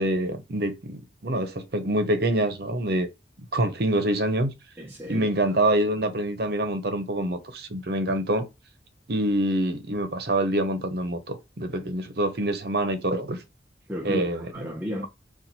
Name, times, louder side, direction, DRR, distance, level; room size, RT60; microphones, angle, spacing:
voice 1, 0.0-3.1 3.5-4.5 5.1-8.5 9.1-13.4 14.0-14.5, right 1 dB, 60° right, 0.8 m, -26 dB
voice 2, 4.8-5.3 13.9-15.1, equal, 10° right, 0.6 m, -33 dB
4.4 x 2.4 x 4.1 m
head